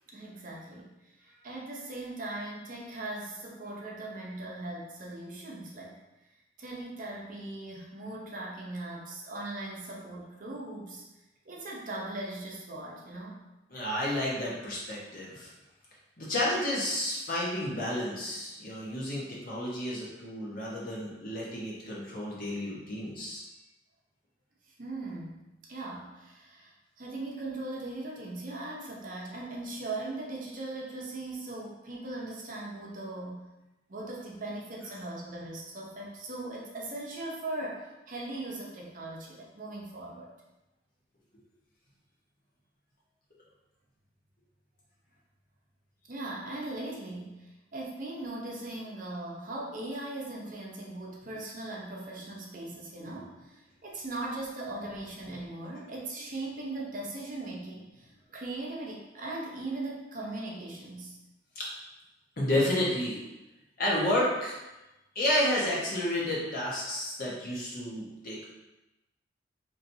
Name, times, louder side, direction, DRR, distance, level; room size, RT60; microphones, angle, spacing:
voice 1, 0.1-0.9 1.2-6.0 6.6-11.0 11.5-13.4 24.8-25.4 25.7-26.7 27.0-33.4 33.9-40.3 46.1-61.2, right 2 dB, 45° right, -3 dB, 0.7 m, -39 dB
voice 2, 13.7-15.5 16.2-23.4 61.5-61.7 62.4-63.2 63.8-64.6 65.1-68.4, left 1 dB, 50° left, -5 dB, 1.1 m, -31 dB
4.3 x 3.0 x 2.7 m, 1.0 s
head